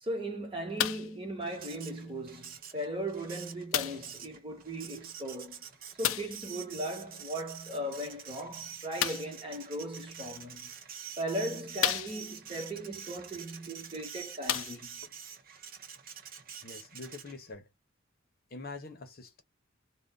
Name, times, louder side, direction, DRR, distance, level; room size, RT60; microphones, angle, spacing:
voice 1, 0.0-5.7 6.0-10.7 11.2-15.0, right 1 dB, 25° right, 1.3 m, -38 dB
sound 1, 0.8-1.2 2.1-2.2 3.7-4.1 6.0-6.4 9.0-9.4 10.4-10.5 11.1-11.2 11.8-12.5 13.8-13.9 14.4-15.1 15.9-16.0, left 12 dB, 70° left, 0.4 m, -32 dB
Printer, 1.4-17.5, right 8 dB, 45° right, 0.8 m, -47 dB
voice 2, 16.6-17.7 18.5-19.4, left 3 dB, 50° left, 0.8 m, -45 dB
2.5 x 2.3 x 3.6 m
head